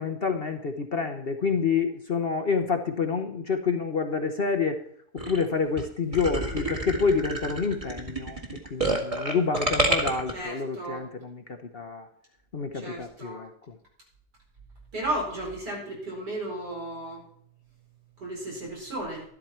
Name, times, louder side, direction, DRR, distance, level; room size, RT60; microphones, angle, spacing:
voice 1, 0.0-4.8 5.3-8.4 8.7-12.1 12.5-13.7, left 5 dB, 45° left, 6 dB, 1.0 m, -28 dB
sound 1, 5.2-5.4 5.8-5.9 6.1-10.3, right 1 dB, 20° right, 1.8 m, -28 dB
voice 2, 10.3-11.1 12.7-13.4 14.9-17.2 18.2-19.2, right 1 dB, 85° right, -2 dB, 5.5 m, -34 dB
12.5 x 12.0 x 4.4 m, 0.63 s
omnidirectional pair, 1.7 m